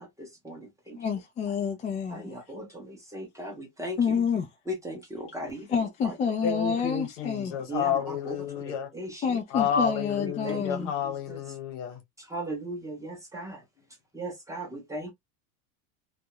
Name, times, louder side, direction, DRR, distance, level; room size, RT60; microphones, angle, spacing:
voice 1, 0.0-1.0 2.1-4.0 4.7-5.7 6.0-6.1 7.7-8.6 8.9-9.4 10.2-11.4 12.2-13.6 14.1-15.1, right 1 dB, 10° right, 0.8 m, -38 dB
voice 2, 1.0-2.4 4.0-4.5 5.7-7.6 9.2-10.9, left 6 dB, 20° left, 0.4 m, -28 dB
voice 3, 6.4-8.9 9.5-12.0, left 8 dB, 70° left, 1.2 m, -30 dB
2.3 x 2.0 x 2.9 m
supercardioid pair, 140°, 36 cm